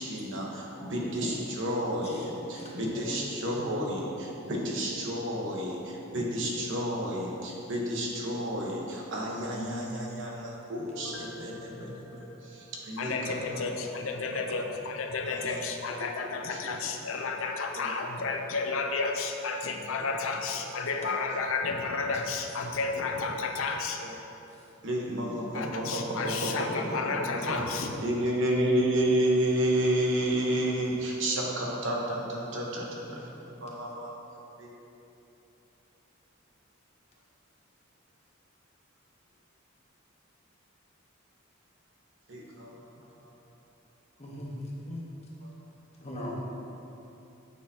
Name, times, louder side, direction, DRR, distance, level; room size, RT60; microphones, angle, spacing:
voice 1, 0.0-13.8 14.5-14.6 15.2-16.1 16.5-16.6 17.8-17.9 20.8-20.9 21.6-21.7 24.0-24.1 24.8-27.7 28.0-34.1 34.6-34.7 42.3-43.3, right 1 dB, 65° right, -2 dB, 1.2 m, -31 dB
voice 2, 1.6-2.2 2.5-3.2 3.6-4.0 9.2-9.8 16.2-16.3 16.6-16.7 24.5-24.7 44.2-45.0 46.0-46.4, equal, 30° left, -4 dB, 1.2 m, -41 dB
Piano, 10.7-13.4 13.8-13.9, left 2 dB, 5° left, 1.1 m, -49 dB
voice 3, 13.0-24.0 25.5-27.9, left 4 dB, 75° left, 4 dB, 0.6 m, -32 dB
9.0 x 6.7 x 2.8 m, 2.9 s
head